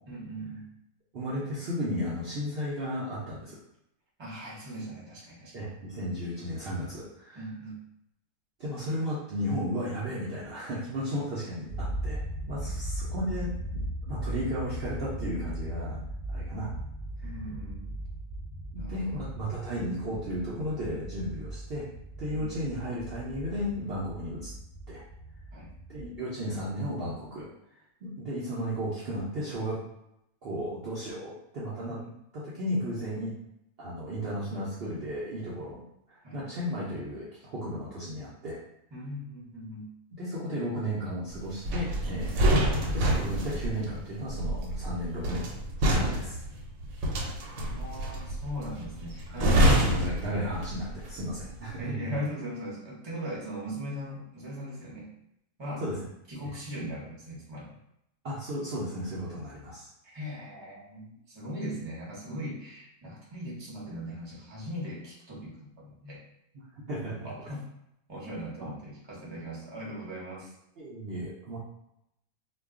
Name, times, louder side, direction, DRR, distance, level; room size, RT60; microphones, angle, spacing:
voice 1, 0.1-0.7 4.2-5.7 7.3-7.8 12.6-12.7 17.2-17.9 18.8-19.2 22.3-22.5 25.5-25.7 31.9-32.1 36.2-36.4 38.9-39.9 46.0-46.1 47.5-50.0 51.8-55.1 55.6-55.8 56.3-57.8 60.0-66.2 67.0-67.7 68.1-70.5, equal, 25° right, -5 dB, 0.7 m, -39 dB
voice 2, 1.1-3.6 5.5-7.4 8.6-12.2 12.5-13.8 14.1-16.0 16.3-16.7 17.2-17.3 18.7-21.9 22.2-24.5 24.9-25.0 25.9-27.5 28.0-29.8 30.4-32.0 32.3-33.3 33.8-35.8 36.1-38.6 40.1-42.6 42.9-45.5 45.8-46.4 49.3-51.9 55.8-56.0 58.2-59.9 66.5-67.3 70.8-71.6, equal, 60° right, -7 dB, 0.7 m, -34 dB
sound 1, 11.7-26.2, right 1 dB, 55° left, 0.8 m, -38 dB
sound 2, 41.6-51.0 51.3-51.6, equal, 85° right, 1.0 m, -27 dB
2.3 x 2.2 x 3.5 m, 0.81 s
omnidirectional pair, 1.4 m